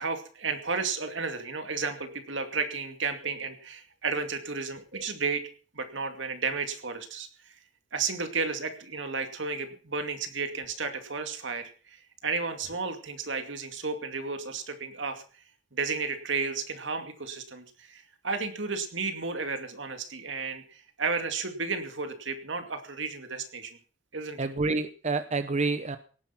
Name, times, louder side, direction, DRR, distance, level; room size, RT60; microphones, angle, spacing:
voice 1, 0.0-5.4 5.7-7.6 7.9-15.2 15.7-23.8 24.1-24.5, right 4 dB, 75° right, 7 dB, 2.4 m, -33 dB
voice 2, 24.4-26.0, right 3 dB, 40° right, 11 dB, 0.8 m, -28 dB
18.0 x 10.5 x 5.8 m, 0.41 s
head